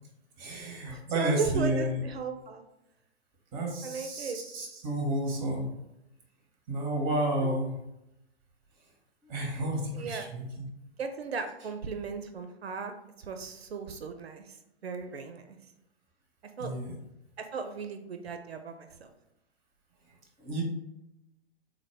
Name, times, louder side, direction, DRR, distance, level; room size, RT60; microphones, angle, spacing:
voice 1, 0.4-2.0 3.5-5.7 6.7-7.7 9.2-10.7 16.6-17.0 20.4-20.6, right 1 dB, 20° right, 1 dB, 0.7 m, -31 dB
voice 2, 0.9-2.6 3.8-4.4 7.1-7.5 9.9-10.3 11.0-14.6 14.8-15.6 16.6-16.7 17.4-19.1, right 5 dB, 75° right, 7 dB, 0.5 m, -36 dB
3.6 x 2.1 x 3.4 m, 0.87 s
figure-of-eight pair, 115°, 32 cm